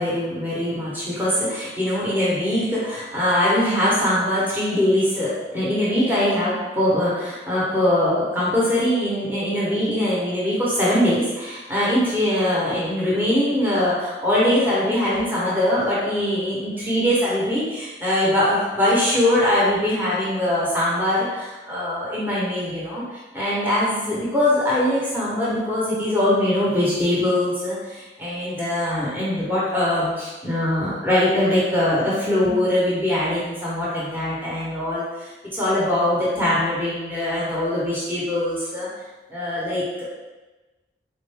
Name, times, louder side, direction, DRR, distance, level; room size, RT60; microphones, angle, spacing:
voice 1, 0.0-38.9 39.3-40.0, left 1 dB, 10° right, -8 dB, 0.9 m, -22 dB
4.2 x 2.5 x 3.4 m, 1.2 s
head